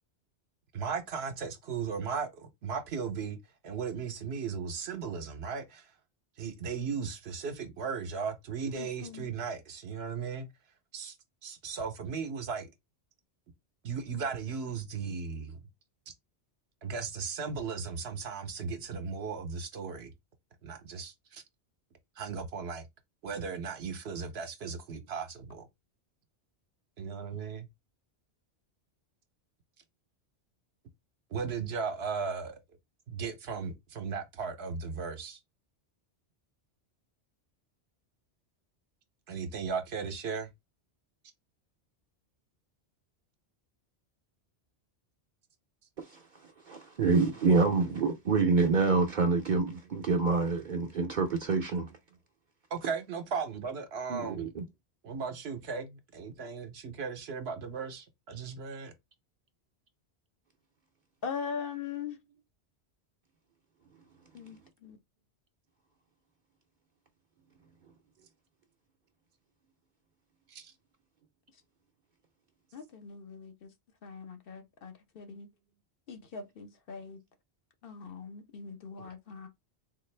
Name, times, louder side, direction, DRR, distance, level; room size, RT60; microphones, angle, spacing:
voice 1, 0.7-3.4 3.6-5.8 6.4-10.5 10.9-11.1 11.4-12.7 13.8-15.6 16.8-20.1 20.6-21.4 22.2-22.9 23.2-25.7 27.0-27.7 31.3-32.6 33.1-35.4 39.3-40.5 52.7-54.5 55.0-58.9 70.5-70.7 79.0-79.1, right 5 dB, 70° right, 0.9 m, -36 dB
voice 2, 8.7-9.3 61.2-62.2 64.3-65.0 72.7-73.7 74.0-75.5 76.1-77.2 77.8-79.5, left 6 dB, 60° left, 0.9 m, -41 dB
voice 3, 46.7-51.9 54.1-54.6, right 4 dB, 55° right, 0.6 m, -27 dB
3.7 x 2.4 x 3.2 m
omnidirectional pair, 1.1 m